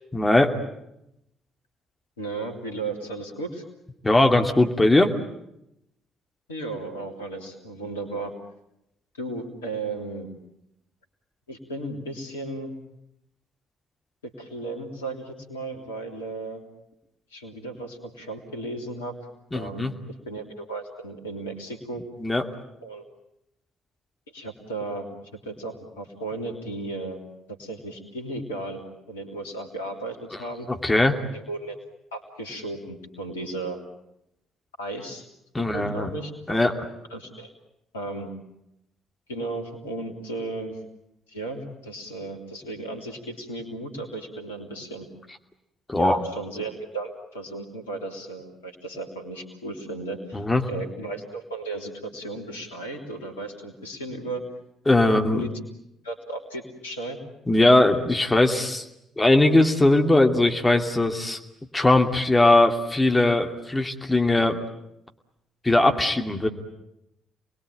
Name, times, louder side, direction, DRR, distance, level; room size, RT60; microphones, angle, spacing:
voice 1, 0.1-0.5 4.0-5.1 19.5-19.9 22.2-22.4 30.7-31.2 35.5-36.1 36.5-36.7 45.9-46.2 50.3-50.6 54.9-55.4 57.5-58.8 59.2-61.4 61.7-64.6 65.6-66.5, left 2 dB, 15° left, 4 dB, 2.6 m, -20 dB
voice 2, 2.2-3.6 6.5-8.3 9.2-10.3 11.5-12.7 14.2-16.6 17.3-19.1 19.5-22.0 22.8-23.0 24.3-25.1 25.4-27.2 27.5-30.7 31.3-31.7 32.1-33.8 34.8-35.2 35.7-36.6 37.1-37.5 37.9-38.3 39.3-40.8 41.3-45.1 45.9-50.4 50.7-54.4 55.3-55.5 56.0-57.2, right 2 dB, 80° left, 5 dB, 3.2 m, -35 dB
29.0 x 21.5 x 9.2 m, 0.83 s
figure-of-eight pair, 45°, 0 cm